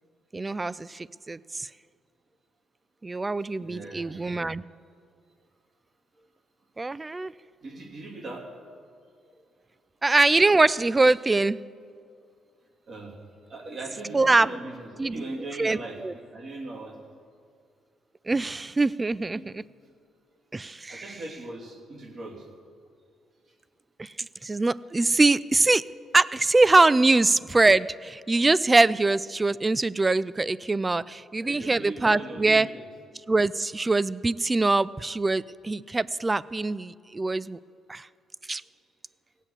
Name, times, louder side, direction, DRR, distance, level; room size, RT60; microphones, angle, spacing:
voice 1, 0.3-1.7 3.0-4.6 6.8-7.3 10.0-11.6 14.1-14.5 15.0-15.2 15.6-16.1 18.3-19.6 20.5-21.0 24.0-25.8 26.1-32.7 33.3-37.6 37.9-38.1 38.5-38.6, right 3 dB, 20° right, 19 dB, 0.3 m, -23 dB
voice 2, 3.6-4.2 7.6-8.5 9.4-9.5 12.9-13.2 13.5-17.0 19.3-19.5 20.9-22.5 31.4-32.9, right 2 dB, 45° right, 0 dB, 2.7 m, -39 dB
17.0 x 8.2 x 7.3 m, 2.3 s
cardioid pair, 90°, 0 cm